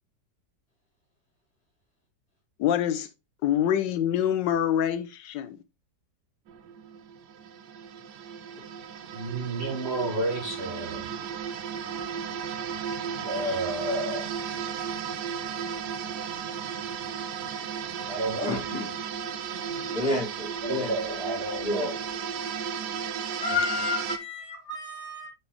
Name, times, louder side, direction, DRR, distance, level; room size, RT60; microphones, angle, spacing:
voice 1, 2.6-3.1 3.4-5.6, left 10 dB, 85° left, 1.3 m, -25 dB
sound 1, 6.5-24.2, right 7 dB, 75° right, 1.3 m, -35 dB
voice 2, 9.1-11.1 11.7-11.9 13.3-14.2 18.1-18.6 19.3-20.0 20.6-22.0 22.9-23.0, right 1 dB, 40° right, 1.3 m, -31 dB
voice 3, 18.4-18.9 19.8-20.9 21.6-21.9 23.4-25.3, left 2 dB, 20° left, 3.5 m, -30 dB
6.1 x 5.3 x 3.2 m
omnidirectional pair, 1.9 m